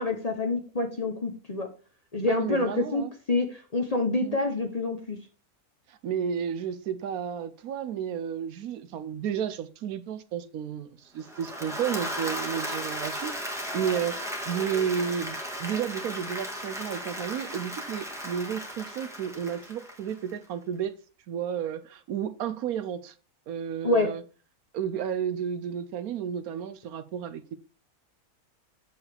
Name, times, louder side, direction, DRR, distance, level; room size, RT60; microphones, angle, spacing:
voice 1, 0.0-1.7 2.1-5.2 23.8-24.1, left 2 dB, 30° left, 0.8 m, -27 dB
voice 2, 2.3-3.1 4.2-4.4 5.9-14.2 14.5-20.9 21.3-23.1 23.5-24.2 24.7-27.6, right 8 dB, 75° right, 1.1 m, -32 dB
Applause / Crowd, 11.2-20.4, equal, ahead, 1.6 m, -36 dB
8.2 x 7.0 x 3.4 m
omnidirectional pair, 1.6 m